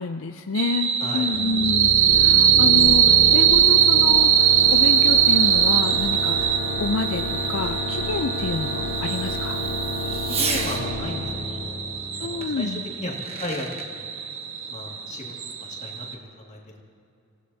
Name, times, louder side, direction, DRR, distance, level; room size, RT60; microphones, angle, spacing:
voice 1, 0.0-9.6 12.2-12.8, left 4 dB, 70° left, 6 dB, 0.5 m, -28 dB
sound 1, 0.5-16.1, right 9 dB, 70° right, 1.0 m, -21 dB
voice 2, 1.0-1.3 10.3-11.8 12.2-14.1 14.7-15.3 15.6-16.8, left 1 dB, 35° left, -2 dB, 2.1 m, -35 dB
sound 2, 1.3-12.7, left 1 dB, 50° left, 2.8 m, -31 dB
Fireworks, 2.0-10.9 12.4-12.5 13.0-13.9, right 4 dB, 30° right, 1.3 m, -37 dB
27.5 x 16.5 x 2.8 m, 2.8 s
head